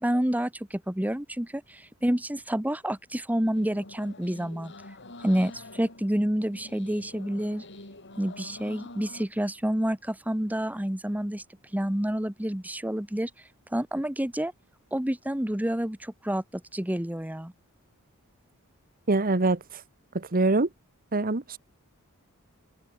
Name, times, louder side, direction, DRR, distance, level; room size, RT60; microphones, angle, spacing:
voice 1, 0.0-4.7 5.2-7.6 8.2-11.4 11.7-13.3 13.7-14.5 14.9-16.4 16.7-17.5, equal, 5° right, 1.2 m, -28 dB
sound 1, 3.5-9.3, left 2 dB, 55° left, 7.7 m, -46 dB
voice 2, 19.1-19.8 20.1-20.7 21.1-21.6, right 2 dB, 40° right, 1.2 m, -24 dB
head